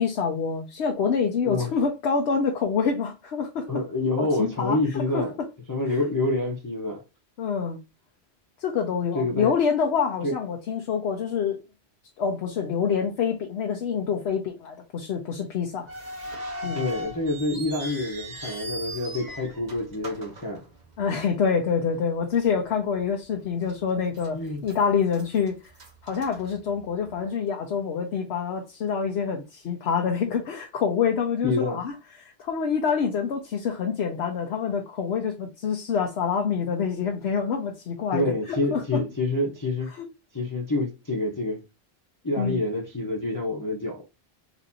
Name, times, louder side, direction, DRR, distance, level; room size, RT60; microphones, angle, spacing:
voice 1, 0.0-3.7 4.2-4.8 5.1-5.2 7.4-7.8 8.6-11.6 12.2-15.9 16.6-16.9 21.0-25.7 26.0-31.9 32.2-38.2 38.7-39.0 42.4-42.6, left 6 dB, 80° left, 0.9 m, -26 dB
voice 2, 3.7-5.3 5.7-7.0 9.1-9.5 10.2-10.3 16.7-20.6 24.3-24.6 31.4-31.8 38.1-39.9 40.3-41.6 42.2-44.0, left 2 dB, 20° left, 0.7 m, -27 dB
sound 1, 15.9-21.2 21.5-21.6 22.3-22.5 23.0-23.1 23.7-24.3 24.6-27.1, equal, 45° right, 1.1 m, -39 dB
4.1 x 2.6 x 2.6 m
omnidirectional pair, 1.1 m